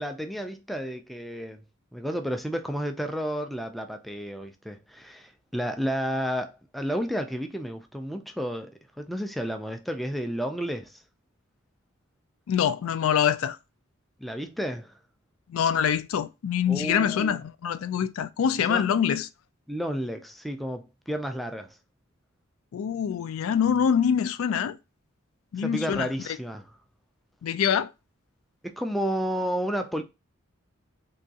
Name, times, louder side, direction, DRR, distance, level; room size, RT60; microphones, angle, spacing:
voice 1, 0.0-1.6 1.9-8.7 9.0-11.0 14.2-14.9 16.7-17.4 18.7-18.8 19.7-21.8 25.6-26.7 28.6-30.0, equal, ahead, 0.4 m, -31 dB
voice 2, 12.5-13.6 15.5-19.3 22.7-24.8 25.5-26.1 27.4-27.9, left 8 dB, 75° left, 0.3 m, -25 dB
3.5 x 3.0 x 2.7 m
head